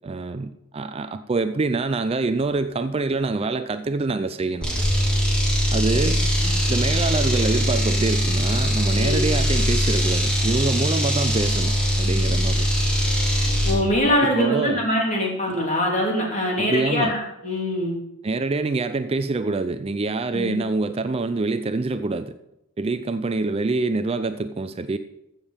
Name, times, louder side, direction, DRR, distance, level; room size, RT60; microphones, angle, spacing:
voice 1, 0.0-4.7 5.7-6.2 6.7-12.7 14.2-14.9 16.6-17.2 18.2-22.3 22.8-25.0, right 3 dB, 25° right, 10 dB, 0.4 m, -25 dB
sound 1, 4.6-13.8, equal, 5° left, 3.1 m, -21 dB
voice 2, 5.9-6.5 9.0-9.2 13.6-18.0 20.3-20.6, left 1 dB, 35° left, -1 dB, 3.4 m, -23 dB
15.0 x 7.3 x 5.1 m, 0.88 s
head